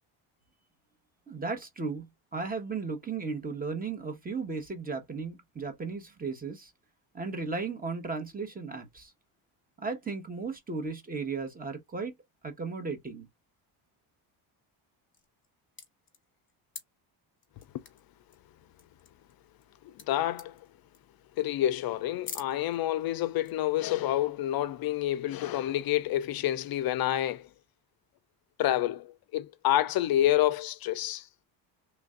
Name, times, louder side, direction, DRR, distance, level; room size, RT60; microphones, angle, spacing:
voice 1, 1.3-2.0 2.3-6.7 7.1-9.1 9.8-12.1 12.4-13.3, right 4 dB, 20° right, 1.0 m, -35 dB
sound 1, 15.1-15.5 15.8-16.8 17.4-18.0 18.3-18.4 18.7-19.7 20.0-20.1 20.3-20.7 20.9-21.2 21.6-21.7 22.2-22.8 23.2-23.5, left 6 dB, 25° left, 1.2 m, -46 dB
voice 2, 19.8-20.7 21.4-27.5 28.6-31.3, left 13 dB, 50° left, 0.5 m, -28 dB
3.3 x 2.5 x 3.6 m
cardioid pair, 110°, 48 cm